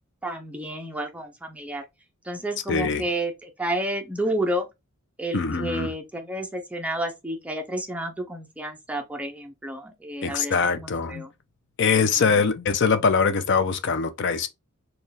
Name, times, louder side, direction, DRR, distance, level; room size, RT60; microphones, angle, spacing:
voice 1, 0.2-1.8 2.2-4.7 5.2-11.3 11.9-12.4, right 1 dB, 5° right, 0.5 m, -31 dB
voice 2, 2.7-3.0 5.3-5.9 10.2-11.2 11.8-14.5, left 5 dB, 55° left, 0.5 m, -23 dB
4.3 x 2.3 x 3.3 m
head